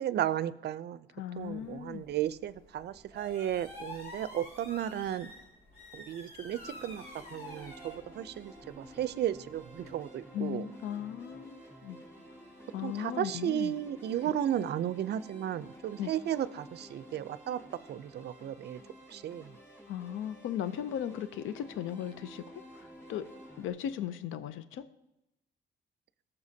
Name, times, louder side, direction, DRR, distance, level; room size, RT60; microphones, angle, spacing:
voice 1, 0.0-1.1 1.4-5.3 5.9-7.0 7.3-10.7 12.8-17.6 17.9-18.8 19.1-19.5, right 11 dB, 55° right, 16 dB, 0.5 m, -34 dB
voice 2, 1.1-2.1 10.3-12.0 12.7-13.7 14.2-14.3 16.0-16.1 19.9-22.4 23.1-23.3 23.6-24.8, left 10 dB, 85° left, 13 dB, 0.5 m, -37 dB
sound 1, 1.4-10.0, left 1 dB, 50° left, 3.6 m, -50 dB
sound 2, 6.5-23.7, equal, 15° left, 3.1 m, -52 dB
17.0 x 6.9 x 2.7 m, 0.91 s
cardioid pair, 90°, 20 cm